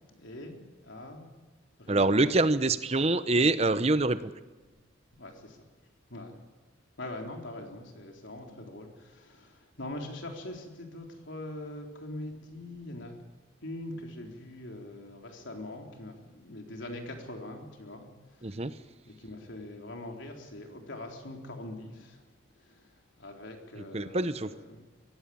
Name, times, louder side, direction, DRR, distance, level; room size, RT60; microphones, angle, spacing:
voice 1, 0.1-1.3 1.8-2.4 5.1-5.6 6.1-6.4 7.0-13.1 13.6-22.2 22.6-22.9 23.2-24.8, left 1 dB, 70° left, 2 dB, 3.9 m, -43 dB
voice 2, 1.9-4.3 18.4-18.7 23.9-24.5, right 2 dB, 30° right, 13 dB, 0.8 m, -25 dB
22.5 x 16.0 x 8.7 m, 1.3 s
head